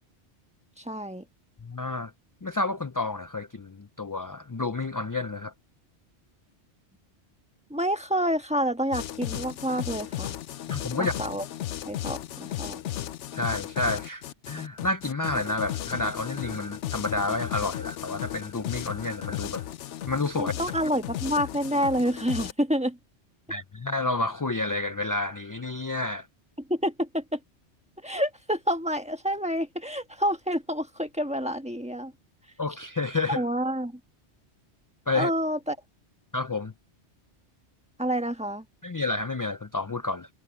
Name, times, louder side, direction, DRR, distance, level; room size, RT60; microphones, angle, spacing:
voice 1, 0.8-1.2 7.7-10.3 11.0-11.5 11.8-12.8 20.4-23.0 26.7-27.4 28.0-32.1 33.4-34.0 35.1-35.8 38.0-38.6, equal, 5° right, 1.4 m, -28 dB
voice 2, 1.6-2.1 2.4-5.5 10.7-11.1 13.3-19.6 20.1-20.5 23.5-26.3 32.6-33.4 35.1-35.3 36.3-36.7 38.8-40.3, left 2 dB, 30° left, 0.4 m, -30 dB
sound 1, 8.9-22.5, left 12 dB, 85° left, 1.0 m, -35 dB
omnidirectional pair, 1.2 m